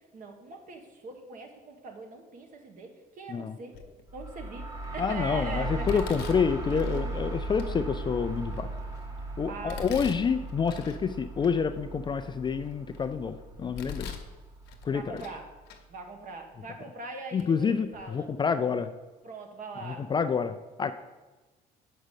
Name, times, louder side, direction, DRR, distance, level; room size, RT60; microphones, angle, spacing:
voice 1, 0.0-3.8 4.1-6.0 6.7-7.1 9.5-10.1 14.9-15.5 15.9-18.3 19.2-20.1, right 3 dB, 50° right, 3 dB, 1.3 m, -42 dB
Domestic sounds home sounds, 3.7-4.1 4.7-5.1 5.9-7.0 7.6-7.7 8.3-9.0 9.7-11.0 11.4-11.5 12.1-13.0 13.5-14.3 14.7-15.4 15.7-15.8 16.6-16.7 17.4-17.5 17.8-18.0, left 6 dB, 85° left, 0.9 m, -42 dB
sound 1, 4.1-15.7, right 2 dB, 20° right, 1.1 m, -38 dB
voice 2, 5.0-8.7 9.4-14.1 14.8-15.0 17.3-18.9 19.8-20.9, left 6 dB, 25° left, 9 dB, 0.3 m, -28 dB
5.3 x 5.1 x 6.4 m, 1.2 s
cardioid pair, 110°, 17 cm